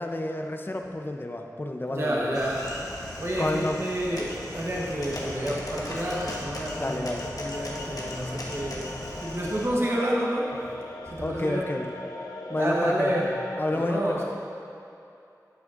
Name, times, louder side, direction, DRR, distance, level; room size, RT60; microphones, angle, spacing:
voice 1, 0.0-2.4 3.4-3.8 6.8-7.3 11.2-11.9 12.5-13.1 13.6-14.2, left 1 dB, 30° left, 4 dB, 0.5 m, -30 dB
voice 2, 1.9-2.8 3.2-7.1 7.4-10.5 11.1-11.6 12.5-13.3 13.7-14.2, equal, 40° right, -4 dB, 1.1 m, -29 dB
sound 1, 2.3-9.7, left 1 dB, 60° left, 1.0 m, -38 dB
sound 2, 3.2-13.6, left 2 dB, 85° left, 0.6 m, -41 dB
11.0 x 6.2 x 2.5 m, 2.7 s
wide cardioid pair, 55°, 7 cm